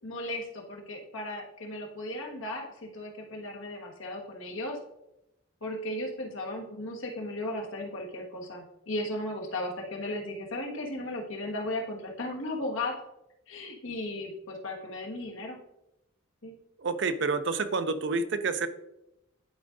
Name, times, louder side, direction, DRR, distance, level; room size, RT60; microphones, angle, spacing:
voice 1, 0.0-4.8 5.6-13.0 13.5-15.6 16.4-16.5, left 1 dB, 80° left, 0 dB, 1.4 m, -36 dB
voice 2, 16.8-18.7, right 4 dB, 60° right, 11 dB, 0.5 m, -28 dB
11.0 x 4.9 x 2.6 m, 0.86 s
head